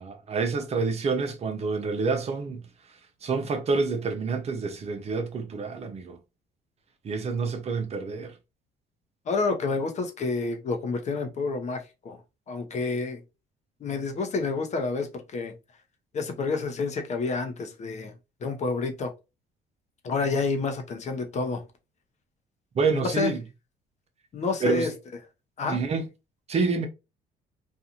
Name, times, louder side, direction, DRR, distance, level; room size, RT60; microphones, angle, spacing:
voice 1, 0.0-2.7 3.2-6.2 7.0-8.3 22.7-23.4 24.6-24.9 25.6-26.1 26.5-26.9, right 4 dB, 40° right, 0.6 m, -28 dB
voice 2, 9.3-12.2 12.5-13.2 13.8-15.5 16.1-18.1 18.4-19.1 20.0-21.6 22.9-23.3 24.3-24.9 25.6-25.8, left 4 dB, 45° left, 0.7 m, -29 dB
2.6 x 2.4 x 2.7 m
cardioid pair, 110°, 17 cm